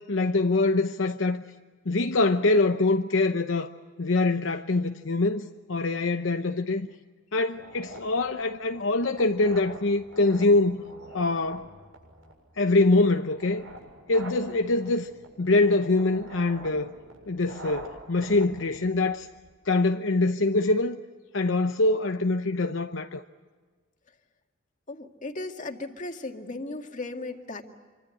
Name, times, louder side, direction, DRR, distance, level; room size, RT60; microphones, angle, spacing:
voice 1, 0.1-1.4 1.9-3.7 4.0-6.9 7.3-10.8 11.1-11.7 12.6-13.7 14.1-15.1 15.4-16.9 17.3-19.3 19.7-21.0 21.3-23.2, left 2 dB, 65° left, 0.9 m, -24 dB
sound 1, 7.5-19.5, right 2 dB, 80° right, 7.4 m, -46 dB
voice 2, 24.9-27.6, left 2 dB, 40° left, 2.2 m, -36 dB
27.0 x 25.0 x 7.8 m
head